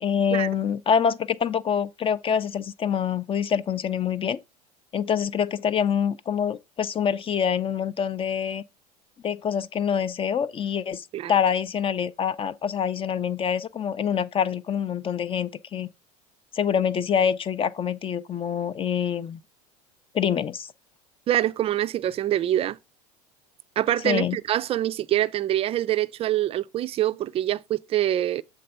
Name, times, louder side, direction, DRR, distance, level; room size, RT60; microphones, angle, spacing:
voice 1, 0.0-4.4 4.9-8.6 9.2-15.9 16.5-19.4 20.1-20.7 24.0-24.4, left 7 dB, 25° left, 0.5 m, -25 dB
voice 2, 21.3-22.8 23.8-28.4, right 13 dB, 30° right, 0.4 m, -25 dB
7.5 x 3.5 x 5.5 m
hypercardioid pair, 85°, 20 cm